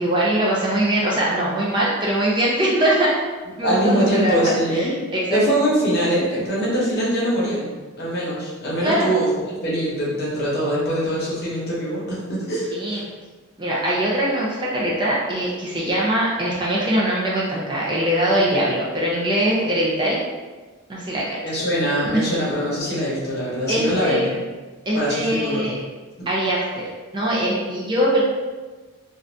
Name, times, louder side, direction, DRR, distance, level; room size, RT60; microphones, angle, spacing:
voice 1, 0.0-3.2 3.6-4.3 4.7-5.4 8.8-9.1 12.7-13.0 13.6-20.2 20.9-21.4 23.7-24.3 24.9-25.7 26.3-26.8 27.1-28.3, right 1 dB, 20° right, -5 dB, 0.4 m, -22 dB
voice 2, 3.6-5.0 5.3-7.7 8.0-13.0 21.4-24.4 24.9-25.7 26.2-26.3, right 1 dB, 50° left, -6 dB, 1.0 m, -23 dB
2.5 x 2.5 x 3.3 m, 1.3 s
head